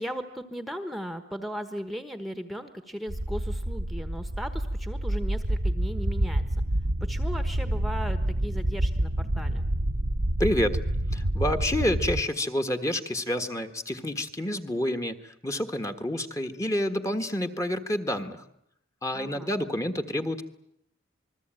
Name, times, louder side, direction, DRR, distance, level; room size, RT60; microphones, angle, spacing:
voice 1, 0.0-6.5 7.0-9.6 19.1-19.5, equal, ahead, 9 dB, 1.2 m, -37 dB
sound 1, 3.1-12.2, right 1 dB, 80° right, 1.3 m, -28 dB
voice 2, 10.4-10.8 11.1-18.4 19.0-20.4, left 1 dB, 15° left, 6 dB, 1.5 m, -28 dB
28.0 x 21.0 x 9.0 m, 0.75 s
head